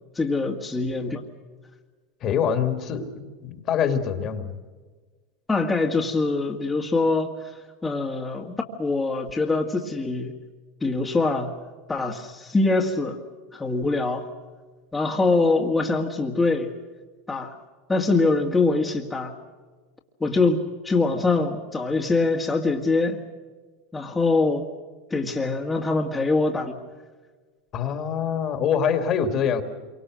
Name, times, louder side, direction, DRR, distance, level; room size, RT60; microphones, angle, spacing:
voice 1, 0.2-1.2 5.5-7.3 7.8-10.3 10.8-11.5 11.9-13.2 13.5-14.3 14.9-16.7 17.3-17.6 17.9-19.3 20.2-23.2 23.9-24.7 25.1-26.8, left 3 dB, 10° left, -1 dB, 2.0 m, -23 dB
voice 2, 2.2-4.6 27.7-29.6, left 7 dB, 40° left, 8 dB, 2.4 m, -25 dB
27.0 x 24.0 x 6.3 m, 1.4 s
supercardioid pair, 125°, 0 cm